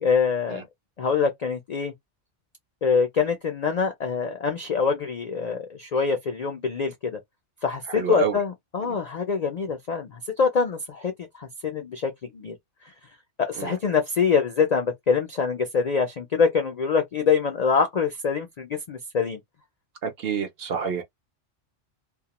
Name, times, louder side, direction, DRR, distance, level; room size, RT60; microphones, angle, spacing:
voice 1, 0.0-0.6 1.0-1.9 2.8-7.2 7.6-12.5 13.4-19.4, left 5 dB, 65° left, 0.4 m, -25 dB
voice 2, 7.9-8.4 8.9-9.0 13.6-13.7 20.0-21.0, right 7 dB, 65° right, 0.7 m, -28 dB
2.3 x 2.1 x 2.9 m
omnidirectional pair, 1.3 m